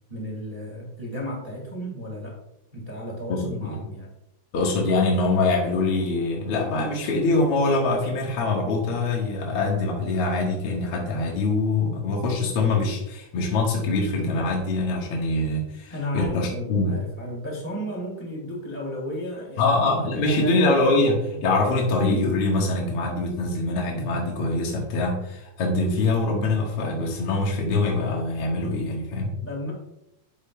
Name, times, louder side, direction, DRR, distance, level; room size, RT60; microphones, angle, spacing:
voice 1, 0.1-2.4 2.7-4.1 15.9-19.9 20.2-20.6 29.4-29.7, equal, 25° right, -3 dB, 1.2 m, -33 dB
voice 2, 3.3-3.7 4.5-16.9 19.6-29.3, left 2 dB, 60° left, -1 dB, 1.6 m, -24 dB
11.0 x 7.9 x 2.2 m, 0.85 s
omnidirectional pair, 4.5 m